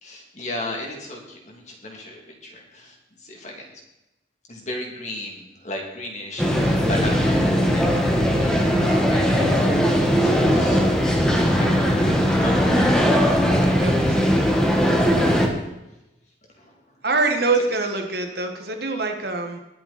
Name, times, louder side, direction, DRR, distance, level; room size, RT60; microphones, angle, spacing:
voice 1, 0.0-3.7 4.5-7.4 7.7-9.6 9.9-13.2 16.6-16.7, left 1 dB, 40° left, 0 dB, 3.1 m, -36 dB
sound 1, 6.4-15.5, equal, 5° left, 1.6 m, -19 dB
voice 2, 13.7-14.3 17.0-19.6, right 3 dB, 55° right, 4 dB, 1.7 m, -24 dB
21.0 x 7.6 x 4.4 m, 0.95 s
head